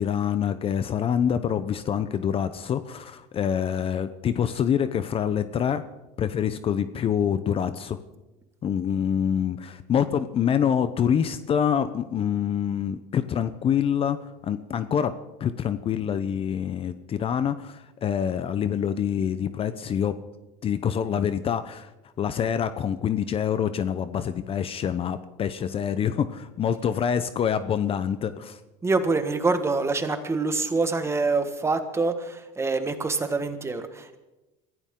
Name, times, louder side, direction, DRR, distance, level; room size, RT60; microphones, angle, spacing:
voice 1, 0.0-5.8 6.2-8.0 8.6-15.1 15.4-20.2 20.6-21.9 22.2-28.6, left 8 dB, 35° left, 12 dB, 0.8 m, -26 dB
voice 2, 28.8-34.2, right 3 dB, 15° right, 8 dB, 1.7 m, -25 dB
24.0 x 16.0 x 3.8 m, 1.0 s
supercardioid pair, 120°, 17 cm